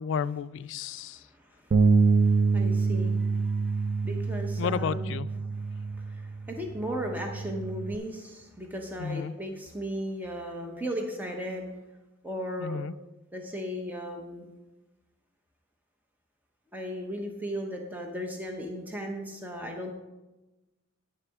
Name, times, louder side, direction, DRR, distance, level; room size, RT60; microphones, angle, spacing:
voice 1, 0.0-1.2 4.6-5.3 9.0-9.3 12.6-12.9, left 6 dB, 65° left, 14 dB, 0.3 m, -32 dB
voice 2, 1.1-5.1 5.5-11.7 12.2-12.9 13.3-14.4 16.7-19.9, equal, 10° right, 1 dB, 0.9 m, -36 dB
Bass guitar, 1.7-8.0, right 4 dB, 45° right, 0.4 m, -26 dB
10.5 x 9.9 x 3.6 m, 1.1 s
head